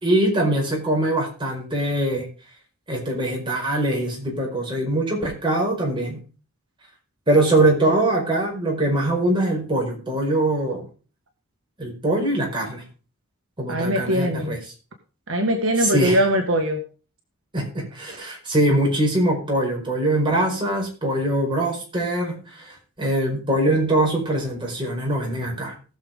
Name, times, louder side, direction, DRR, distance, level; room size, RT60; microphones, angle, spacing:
voice 1, 0.0-2.3 2.9-6.2 7.3-10.9 11.8-12.8 13.6-14.6 15.8-16.2 17.5-25.7, right 1 dB, 25° right, -2 dB, 5.1 m, -22 dB
voice 2, 13.7-14.6 15.3-16.8, equal, 70° right, 3 dB, 1.8 m, -21 dB
19.0 x 6.9 x 3.7 m, 0.36 s
head